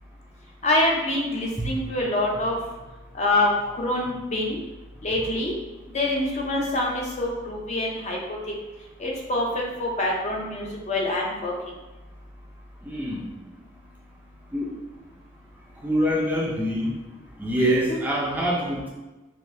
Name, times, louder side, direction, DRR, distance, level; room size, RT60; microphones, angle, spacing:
voice 1, 0.6-2.6 3.1-4.6 5.0-5.5 5.9-8.2 9.0-11.5 17.9-18.0, left 1 dB, 40° left, -2 dB, 0.6 m, -25 dB
voice 2, 12.8-13.2 14.5-14.7 15.8-16.9 17.4-18.9, equal, 10° right, -3 dB, 0.4 m, -25 dB
3.7 x 2.6 x 2.6 m, 1.1 s
head